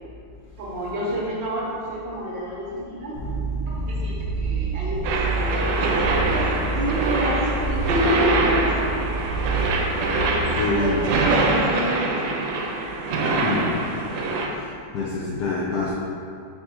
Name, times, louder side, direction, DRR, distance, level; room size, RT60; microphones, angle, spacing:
voice 1, 0.6-3.1 3.7-6.4 6.7-9.1 10.5-12.4, equal, 65° right, -6 dB, 1.5 m, -29 dB
sound 1, 3.1-11.6, right 2 dB, 75° left, 1.6 m, -28 dB
sound 2, 5.0-14.5, right 3 dB, 85° right, 1.5 m, -24 dB
voice 2, 10.5-11.0 13.3-13.7 14.4-14.7 14.9-15.9, left 2 dB, 90° left, -5 dB, 0.9 m, -26 dB
4.6 x 3.8 x 2.9 m, 2.3 s
omnidirectional pair, 2.4 m